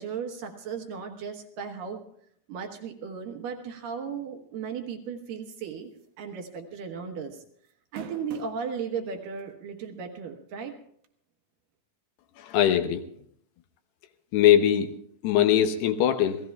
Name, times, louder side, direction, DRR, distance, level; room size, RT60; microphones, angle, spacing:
voice 1, 0.0-2.0 2.5-5.9 6.2-7.4 7.9-10.8, right 6 dB, 65° right, 4 dB, 2.5 m, -36 dB
sound 1, 6.0-6.2 6.6-6.7 7.7-8.6 9.4-9.5 11.0-11.1, right 10 dB, 80° right, 3.3 m, -42 dB
voice 2, 12.4-13.0 14.3-14.9 15.2-16.4, left 11 dB, 80° left, 7 dB, 2.8 m, -21 dB
28.5 x 17.0 x 2.3 m, 0.67 s
omnidirectional pair, 4.9 m